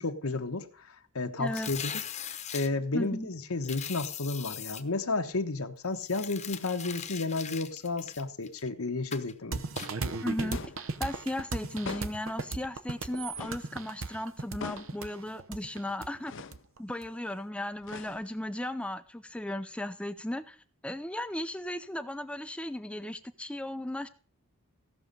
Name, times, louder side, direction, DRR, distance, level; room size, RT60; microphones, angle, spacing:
voice 1, 0.0-1.9 2.5-9.6, left 3 dB, 85° left, 1.2 m, -32 dB
voice 2, 1.4-1.7 2.9-3.3 10.2-10.7 11.0-16.3 16.8-20.6 20.8-24.1, left 1 dB, 5° left, 0.5 m, -36 dB
sound 1, 1.5-2.7 3.6-4.8 6.0-8.7 9.1-9.3 9.8-9.9, left 9 dB, 30° left, 1.0 m, -40 dB
sound 2, 9.5-17.1, right 4 dB, 65° right, 0.9 m, -37 dB
sound 3, 10.5-10.9 11.8-12.3 13.4-13.7 14.6-15.0 16.3-16.6 17.8-18.5, left 5 dB, 60° left, 0.6 m, -41 dB
16.0 x 6.3 x 5.3 m
head